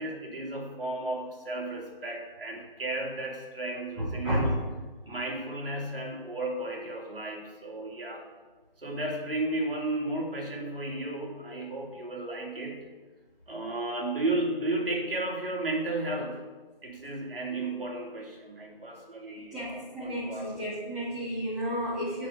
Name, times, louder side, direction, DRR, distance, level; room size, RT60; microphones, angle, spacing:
voice 1, 0.0-4.6 5.1-8.2 8.8-12.8 13.5-16.4 16.8-20.5, right 2 dB, 75° right, -2 dB, 2.4 m, -33 dB
voice 2, 4.0-4.5 19.5-22.3, equal, ahead, -14 dB, 2.4 m, -31 dB
6.5 x 5.0 x 6.6 m, 1.3 s
figure-of-eight pair, 165°, 29 cm